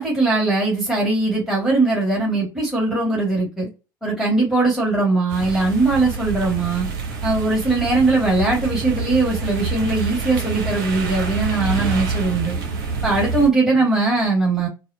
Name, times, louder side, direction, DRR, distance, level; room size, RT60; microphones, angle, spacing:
voice 1, 0.0-3.7 4.0-6.9 7.2-12.6 13.0-14.7, right 3 dB, 5° right, 2.1 m, -20 dB
sound 1, 5.3-13.5, right 4 dB, 65° right, 0.8 m, -27 dB
4.0 x 2.2 x 2.7 m
figure-of-eight pair, 65°, 11 cm